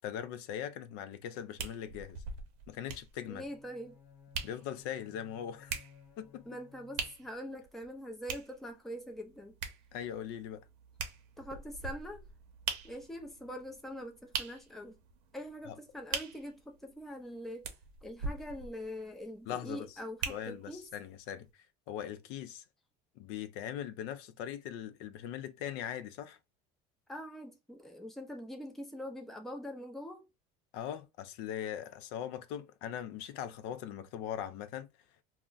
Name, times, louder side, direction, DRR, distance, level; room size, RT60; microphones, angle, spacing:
voice 1, 0.0-2.2 2.7-3.4 4.4-5.8 6.2-6.4 9.9-10.6 19.5-19.9 20.3-21.5 21.9-22.6 23.2-26.4 30.7-34.9, left 10 dB, 70° left, 0.4 m, -40 dB
sound 1, 1.6-20.9 21.4-21.5, right 6 dB, 75° right, 0.7 m, -43 dB
Bowed string instrument, 3.3-7.6, left 7 dB, 40° left, 0.9 m, -58 dB
voice 2, 3.3-4.0 6.5-9.5 11.4-12.2 12.8-15.0 15.3-17.7 18.0-20.8 27.1-30.2, equal, ahead, 0.4 m, -43 dB
2.3 x 2.1 x 3.7 m
cardioid pair, 160°, 18 cm